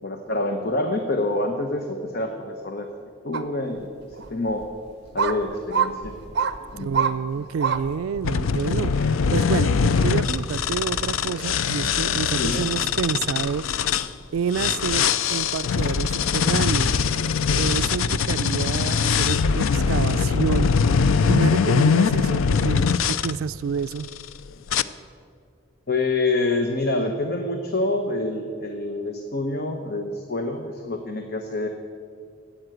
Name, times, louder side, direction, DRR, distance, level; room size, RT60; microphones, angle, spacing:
voice 1, 0.0-2.9 3.2-3.9 4.3-4.7 5.1-6.1 6.7-7.0 7.4-7.5 12.3-12.7 25.9-31.7, left 2 dB, 50° left, 5 dB, 0.9 m, -26 dB
sound 1, 3.3-3.4 4.2-4.3 5.2-5.4 5.7-5.9 6.4-6.5 6.9-7.1 7.6-7.8 8.3-8.4, right 7 dB, 55° right, 0.7 m, -23 dB
sound 2, 3.6-17.8, equal, 25° left, 1.9 m, -46 dB
voice 2, 6.6-13.6 14.3-16.9 17.4-20.7 21.3-24.1, right 6 dB, 85° right, 15 dB, 0.3 m, -29 dB
sound 3, 8.2-14.1 14.5-23.3 24.0-24.3 24.7-24.8, left 6 dB, 80° left, 0.5 m, -22 dB
13.5 x 8.9 x 7.8 m, 2.2 s
head